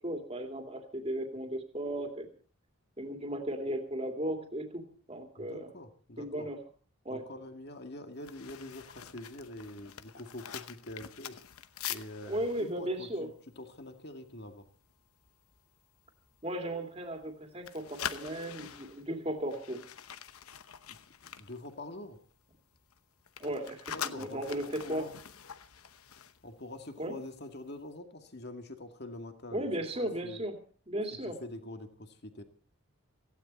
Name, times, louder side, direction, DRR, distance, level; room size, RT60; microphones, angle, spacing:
voice 1, 0.0-2.3 3.0-5.7 6.2-6.6 7.0-7.2 12.3-13.3 16.4-19.8 23.4-25.1 27.0-27.2 29.5-30.6 30.9-31.4, right 1 dB, 25° right, 4 dB, 2.5 m, -36 dB
voice 2, 5.4-6.5 7.1-11.4 11.9-14.7 20.9-22.2 23.9-25.2 26.4-30.4 31.2-32.4, left 1 dB, 50° left, 6 dB, 2.1 m, -45 dB
sound 1, 8.2-14.3 14.6-14.9 15.2-15.6 16.1-17.3 17.6-22.3 22.6-27.1 27.4-27.6, left 9 dB, 85° left, 1.0 m, -44 dB
18.0 x 15.5 x 4.2 m, 0.41 s
head